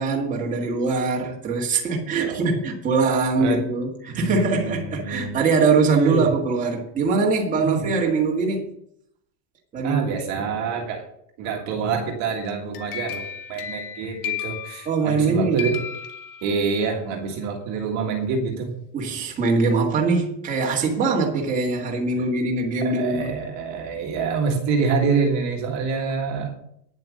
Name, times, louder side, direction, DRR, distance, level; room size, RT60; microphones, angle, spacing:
voice 1, 0.0-8.6 9.7-10.1 10.3-10.5 14.9-15.7 18.9-23.3, right 4 dB, 15° right, 1.8 m, -22 dB
voice 2, 2.1-2.4 3.4-3.6 4.1-5.4 5.9-6.3 7.6-7.9 9.8-11.1 11.4-15.8 16.4-18.7 22.8-26.5, right 5 dB, 35° right, 1.8 m, -26 dB
sound 1, 12.5-15.3 15.6-16.9, left 9 dB, 60° left, 1.6 m, -34 dB
10.0 x 7.6 x 6.4 m
supercardioid pair, 170°, 49 cm